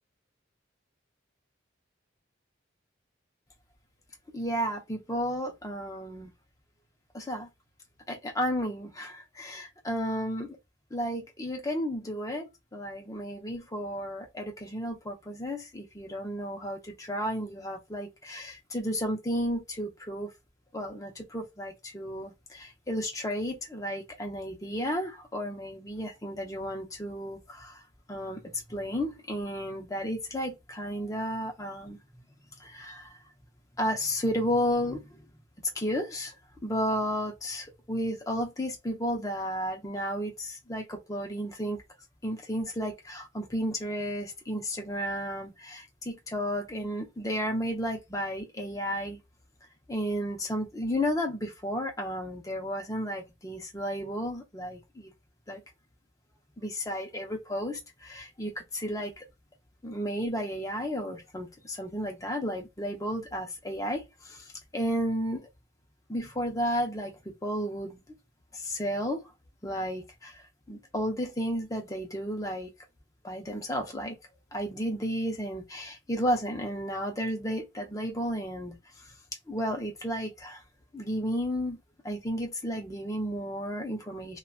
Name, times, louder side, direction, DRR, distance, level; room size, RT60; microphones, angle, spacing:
voice 1, 4.3-6.3 7.1-7.5 8.1-10.6 10.9-20.3 20.7-27.8 28.1-32.0 32.6-33.2 33.8-35.2 35.7-36.3 36.6-41.8 42.2-49.2 49.9-55.1 55.5-55.6 56.6-59.2 59.8-65.5 66.1-68.0 68.5-69.2 69.6-70.4 70.7-72.7 73.2-74.2 74.5-79.1 79.5-80.6 80.9-81.8 82.0-84.4, equal, 15° left, 0.6 m, -33 dB
2.7 x 2.3 x 2.4 m
head